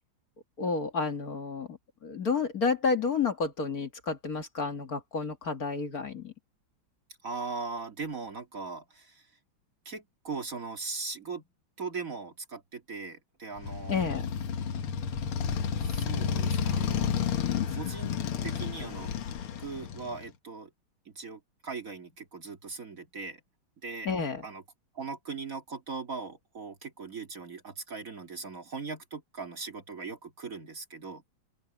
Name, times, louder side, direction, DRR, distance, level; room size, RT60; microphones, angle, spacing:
voice 1, 0.6-6.3 13.9-14.3 24.1-24.5, left 4 dB, 45° left, 2.1 m, -30 dB
voice 2, 7.2-9.3 9.9-11.4 11.8-14.0 15.8-17.4 17.7-18.1 18.4-19.1 19.6-20.7 21.1-23.4 23.8-24.1 24.4-24.6 24.9-31.2, right 4 dB, 40° right, 2.4 m, -39 dB
Motorcycle, 13.6-20.3, left 7 dB, 85° left, 2.2 m, -31 dB
open air
omnidirectional pair, 2.3 m